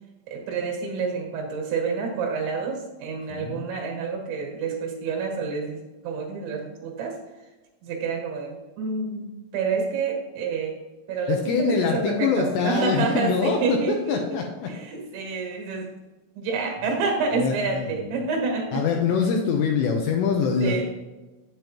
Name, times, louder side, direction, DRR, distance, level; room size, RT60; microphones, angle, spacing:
voice 1, 0.3-7.2 7.8-9.3 9.5-10.8 11.1-14.2 14.7-15.9 16.4-18.8 20.6-20.9, right 4 dB, 70° right, 1 dB, 3.5 m, -28 dB
voice 2, 3.3-3.7 11.3-14.7 17.4-18.1 18.7-20.9, left 5 dB, 80° left, 2 dB, 2.6 m, -24 dB
8.6 x 7.9 x 3.0 m, 1.1 s
omnidirectional pair, 5.6 m